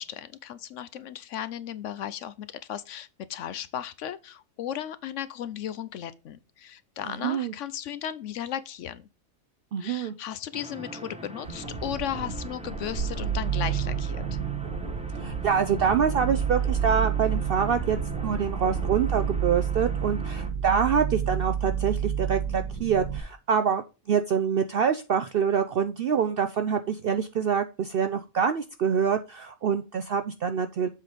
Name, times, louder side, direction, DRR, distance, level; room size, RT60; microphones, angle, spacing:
voice 1, 0.0-9.1 9.8-14.2, left 10 dB, 70° left, 0.8 m, -36 dB
voice 2, 7.0-7.5 9.7-10.1 15.2-30.9, right 7 dB, 65° right, 0.5 m, -26 dB
sound 1, 10.5-20.5, right 1 dB, 5° right, 0.6 m, -42 dB
sound 2, 11.4-19.4, right 4 dB, 45° right, 1.8 m, -37 dB
sound 3, 13.0-23.2, right 8 dB, 80° right, 1.7 m, -30 dB
7.4 x 4.0 x 5.0 m
omnidirectional pair, 1.5 m